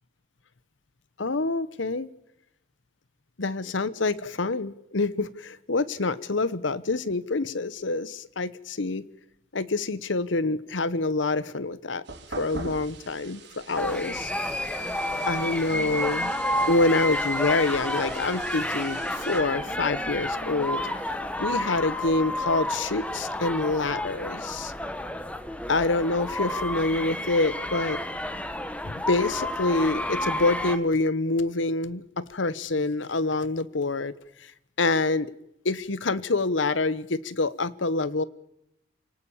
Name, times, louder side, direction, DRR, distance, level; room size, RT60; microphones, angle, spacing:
voice 1, 1.2-2.1 3.4-9.0 9.5-12.0 12.4-14.3 15.3-16.3 16.7-20.8 21.4-24.7 25.7-28.0 28.8-34.1 34.8-35.3 35.6-38.2, left 3 dB, 75° left, 18 dB, 1.0 m, -26 dB
sound 1, 12.0-19.4, right 3 dB, 60° right, 3.9 m, -44 dB
sound 2, 13.8-30.8, left 1 dB, 5° left, 1.2 m, -30 dB
Wind instrument woodwind instrument, 14.7-22.1, right 2 dB, 35° right, 3.0 m, -46 dB
29.0 x 18.5 x 7.2 m, 0.83 s
head